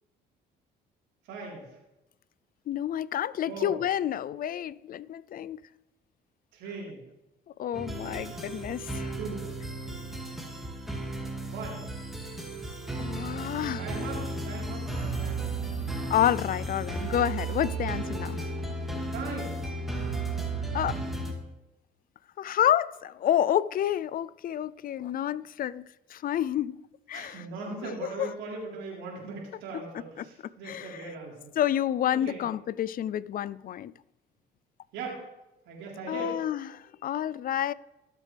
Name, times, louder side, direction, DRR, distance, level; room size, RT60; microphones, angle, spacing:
voice 1, 1.3-1.6 3.5-3.8 6.5-7.0 9.2-9.5 11.5-11.8 13.8-15.5 19.1-19.6 27.1-31.5 32.1-32.4 34.9-35.2 35.7-36.3, right 4 dB, 90° right, 4.0 m, -39 dB
voice 2, 2.7-5.6 7.6-9.2 13.0-13.8 16.1-18.4 20.7-21.0 22.4-26.8 27.1-27.4 27.8-28.3 29.7-29.8 30.2-30.3 30.6-31.1 31.6-33.9 36.1-37.7, left 11 dB, 50° left, 0.4 m, -29 dB
sound 1, 7.7-21.3, right 2 dB, ahead, 2.3 m, -34 dB
19.5 x 7.5 x 3.4 m
cardioid pair, 90°, 19 cm